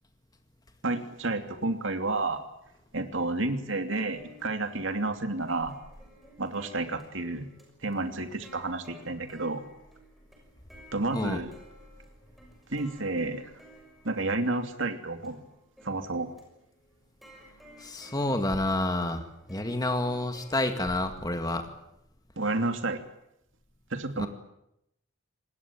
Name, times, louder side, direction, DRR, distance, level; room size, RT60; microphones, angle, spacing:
voice 1, 0.8-2.4 2.9-5.7 6.4-7.5 7.8-9.7 10.9-11.5 12.7-13.5 14.0-15.4 15.8-16.3 22.4-23.0 23.9-24.3, right 2 dB, 65° right, 6 dB, 2.9 m, -30 dB
sound 1, 4.1-21.4, left 1 dB, ahead, 6.5 m, -55 dB
voice 2, 17.8-21.7 24.2-24.3, left 1 dB, 20° left, 6 dB, 2.0 m, -29 dB
26.5 x 20.0 x 8.9 m, 0.83 s
head